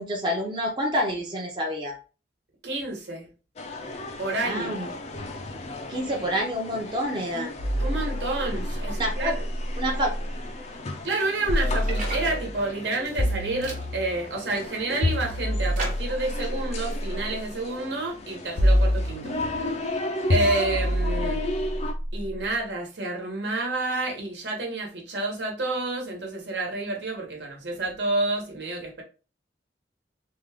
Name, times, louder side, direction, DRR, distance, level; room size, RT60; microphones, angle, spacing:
voice 1, 0.0-2.0 4.4-4.9 5.9-7.5 8.8-9.3 9.8-10.1, equal, 25° right, 0.7 m, -28 dB
voice 2, 2.6-3.3 4.2-4.8 7.3-7.4 7.8-9.4 11.0-19.3 20.3-21.4 22.1-29.0, right 2 dB, 75° right, 1.2 m, -29 dB
sound 1, 3.6-21.9, left 1 dB, 40° left, 0.5 m, -36 dB
sound 2, 7.6-10.4 11.5-12.5 13.2-14.3 15.0-17.3 18.6-19.7 20.3-22.5, left 1 dB, 85° left, 0.7 m, -27 dB
sound 3, 11.3-12.4 12.9-13.3 13.6-13.8 14.5-15.2 15.8-16.2, right 2 dB, 45° right, 1.1 m, -37 dB
3.6 x 2.4 x 3.3 m
head